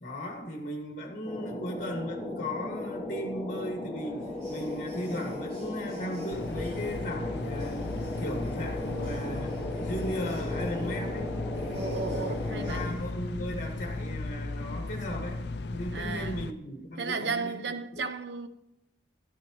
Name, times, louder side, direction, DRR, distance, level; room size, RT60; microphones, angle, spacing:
voice 1, 0.0-7.8 8.2-11.3 12.0-15.4 15.7-17.6 17.9-18.1, equal, 45° left, 1.9 m, -36 dB
sound 1, 1.3-12.9, left 2 dB, 15° left, 1.9 m, -36 dB
sound 2, 4.0-13.1, equal, 40° right, 4.0 m, -51 dB
sound 3, 6.3-16.5, left 2 dB, 70° left, 0.5 m, -36 dB
voice 2, 11.7-12.9 15.9-16.4 17.0-18.5, right 4 dB, 70° right, 0.7 m, -34 dB
12.5 x 12.0 x 3.0 m
head